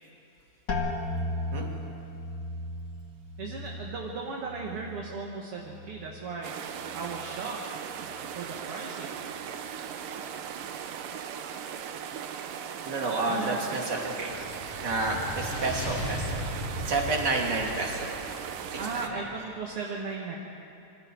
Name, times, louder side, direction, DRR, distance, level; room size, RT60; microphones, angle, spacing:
sound 1, 0.7-6.3 6.6-7.3 7.9-8.3, left 2 dB, 40° left, 1.9 m, -36 dB
voice 1, 3.4-7.6 8.4-9.2 13.3-14.0 18.8-20.4, right 4 dB, 50° right, -1 dB, 2.2 m, -37 dB
sound 2, 6.4-19.1, right 8 dB, 75° right, 2.6 m, -38 dB
voice 2, 12.8-14.3 14.8-16.5 16.9-18.2 18.7-18.8, right 3 dB, 30° right, -1 dB, 3.0 m, -30 dB
sound 3, 14.0-19.4, left 1 dB, 75° left, 6.9 m, -37 dB
27.5 x 25.0 x 4.7 m, 2.9 s
omnidirectional pair, 4.0 m